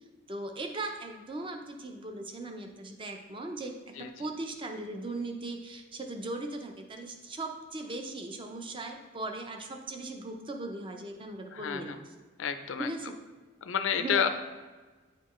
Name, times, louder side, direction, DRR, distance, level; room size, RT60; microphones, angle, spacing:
voice 1, 0.3-3.7 4.2-12.0 12.8-13.1 13.9-14.3, right 2 dB, 25° right, 4 dB, 0.5 m, -38 dB
voice 2, 4.0-4.3 11.5-12.0 12.4-12.9 13.6-14.3, left 7 dB, 70° left, 9 dB, 0.5 m, -30 dB
9.2 x 4.3 x 3.1 m, 1.3 s
head